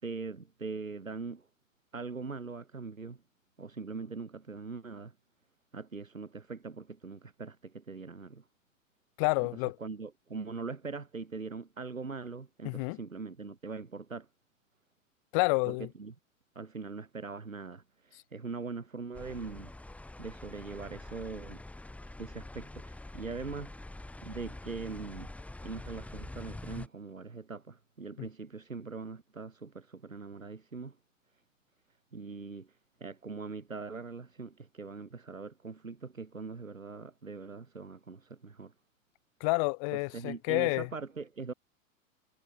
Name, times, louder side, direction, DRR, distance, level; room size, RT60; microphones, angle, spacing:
voice 1, 0.0-1.5 1.9-3.2 3.6-5.1 5.7-8.4 9.8-14.3 15.7-16.1 16.6-19.7 20.2-21.6 22.2-23.7 24.2-25.3 25.6-31.0 32.1-32.7 33.0-38.7 39.9-41.5, right 4 dB, 80° right, 7.5 m, -41 dB
voice 2, 9.2-9.8 12.6-13.0 15.3-15.9 39.4-40.9, left 32 dB, 30° left, 0.5 m, -29 dB
sound 1, 19.1-26.9, left 2 dB, 5° left, 1.4 m, -45 dB
figure-of-eight pair, 95°, 40 cm